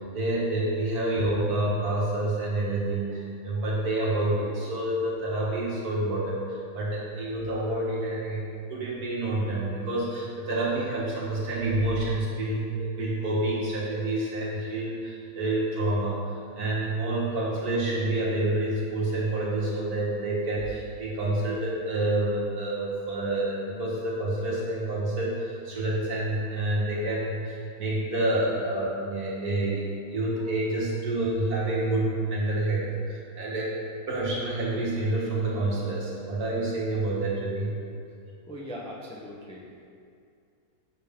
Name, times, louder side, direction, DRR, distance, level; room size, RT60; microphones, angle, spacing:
voice 1, 0.1-8.4 8.7-33.7 34.1-37.7, right 2 dB, 65° right, -5 dB, 2.0 m, -28 dB
voice 2, 38.5-39.7, equal, 5° left, -4 dB, 0.5 m, -39 dB
7.3 x 6.4 x 3.6 m, 2.4 s
omnidirectional pair, 1.7 m